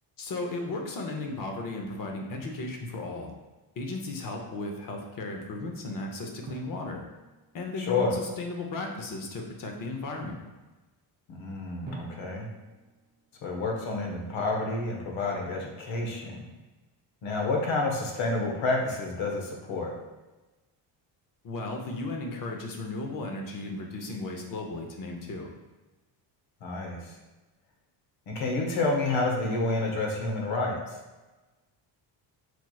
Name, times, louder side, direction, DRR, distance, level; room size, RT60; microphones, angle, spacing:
voice 1, 0.2-3.3 3.8-7.0 7.5-10.4 21.4-25.5, left 2 dB, 45° left, 2 dB, 0.7 m, -35 dB
Drum, 2.4-3.5 6.4-8.3 11.8-13.8, right 2 dB, 20° right, 0.5 m, -48 dB
voice 2, 7.8-8.1 11.3-12.5 13.4-16.4 17.2-19.9 26.6-27.1 28.3-30.8, left 3 dB, 80° left, 0 dB, 0.9 m, -29 dB
4.3 x 2.9 x 2.3 m, 1.1 s
cardioid pair, 100°, 47 cm